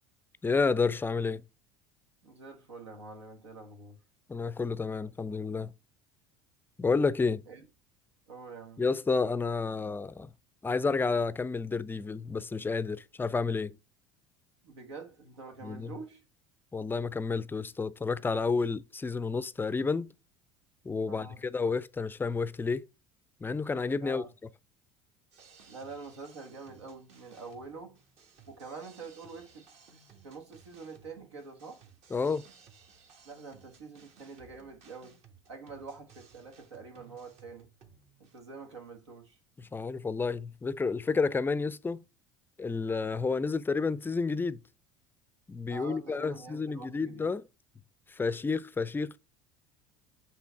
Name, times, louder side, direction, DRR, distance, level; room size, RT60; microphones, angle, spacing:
voice 1, 0.4-1.4 4.3-5.7 6.8-7.4 8.8-10.3 10.6-13.8 15.6-15.9 16.7-20.1 20.8-22.9 23.4-24.2 32.1-32.5 39.6-42.0 42.6-44.6 45.5-47.4 48.1-49.2, left 4 dB, 15° left, 0.4 m, -30 dB
voice 2, 2.2-4.0 7.5-7.7 8.3-8.8 14.6-16.2 21.1-21.4 24.0-24.3 25.7-28.0 28.5-29.6 29.9-31.9 33.2-35.2 35.5-37.7 38.2-39.4 45.7-47.3, right 4 dB, 85° right, 1.4 m, -46 dB
sound 1, 25.3-38.4, right 6 dB, 50° right, 1.4 m, -59 dB
7.5 x 3.3 x 4.5 m
hypercardioid pair, 70°, 14 cm